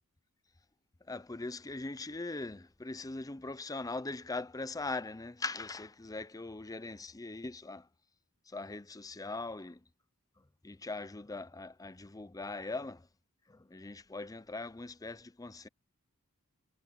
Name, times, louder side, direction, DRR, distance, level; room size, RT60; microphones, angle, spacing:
voice 1, 1.1-7.9 8.5-9.8 10.6-13.1 13.5-15.7, left 3 dB, 15° left, 0.6 m, -41 dB
head